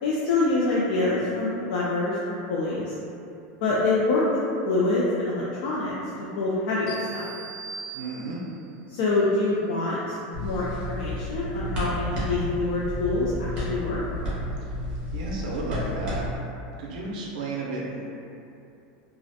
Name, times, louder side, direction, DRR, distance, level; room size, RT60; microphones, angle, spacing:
voice 1, 0.0-2.2 2.5-2.9 3.6-4.4 4.6-7.3 8.9-10.2 10.4-14.0, left 2 dB, 65° left, -6 dB, 0.3 m, -25 dB
sound 1, 6.9-8.7, right 4 dB, 30° left, 0.8 m, -40 dB
voice 2, 7.9-8.4 14.6-14.7 15.1-16.2 16.8-18.0, right 2 dB, 80° right, -4 dB, 0.4 m, -32 dB
sound 2, 10.3-16.4, equal, 20° right, 0.6 m, -31 dB
2.4 x 2.0 x 2.6 m, 2.6 s
supercardioid pair, 165°, 5 cm